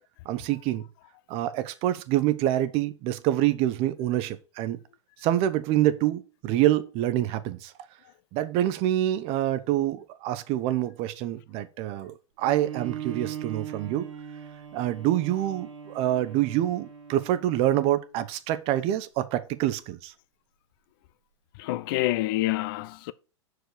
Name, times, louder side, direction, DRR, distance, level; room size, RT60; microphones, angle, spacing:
voice 1, 0.2-0.8 1.3-4.8 5.2-7.7 8.3-14.1 14.7-20.1, right 13 dB, 40° right, 0.8 m, -26 dB
Bowed string instrument, 12.4-18.1, right 9 dB, 70° right, 2.1 m, -40 dB
voice 2, 21.6-23.1, left 17 dB, 45° left, 0.4 m, -27 dB
6.4 x 4.9 x 6.4 m
figure-of-eight pair, 95°, 16 cm